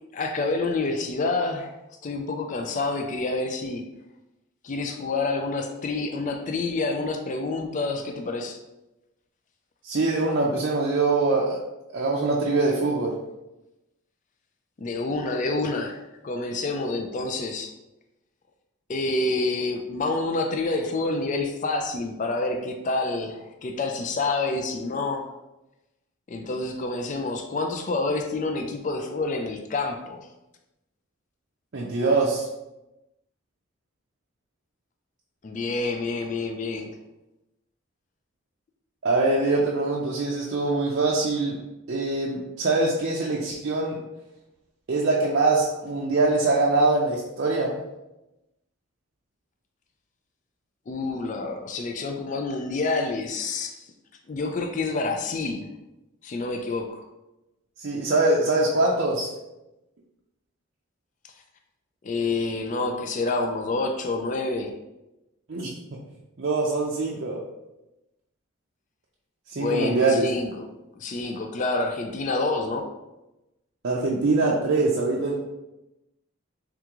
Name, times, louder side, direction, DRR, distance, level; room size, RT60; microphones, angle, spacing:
voice 1, 0.1-1.7 2.0-3.8 4.6-8.6 14.8-16.0 16.2-17.7 18.9-25.3 26.3-30.3 35.4-36.9 50.9-53.8 54.3-55.7 56.2-57.0 62.0-64.7 69.6-70.7 71.0-72.8, left 3 dB, 35° left, 4 dB, 0.3 m, -28 dB
voice 2, 9.8-11.6 11.9-13.2 31.7-32.5 39.0-41.6 41.9-44.0 44.9-47.8 57.8-59.3 65.5-65.7 66.4-67.4 69.5-70.3 73.8-75.4, right 3 dB, 55° right, -4 dB, 0.5 m, -23 dB
3.6 x 3.5 x 2.9 m, 0.96 s
head